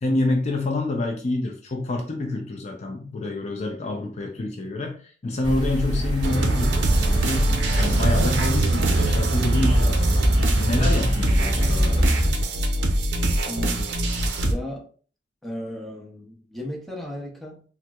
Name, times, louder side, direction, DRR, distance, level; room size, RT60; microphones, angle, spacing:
voice 1, 0.0-10.3 10.6-12.1, left 2 dB, 40° left, 2 dB, 0.5 m, -27 dB
sound 1, 5.4-12.3, equal, 25° right, 1.1 m, -24 dB
sound 2, 6.2-14.5, right 2 dB, 70° right, 0.5 m, -23 dB
voice 2, 13.5-14.0 14.5-14.8 15.4-17.6, left 1 dB, ahead, -2 dB, 0.7 m, -35 dB
4.3 x 2.0 x 2.3 m, 0.43 s
head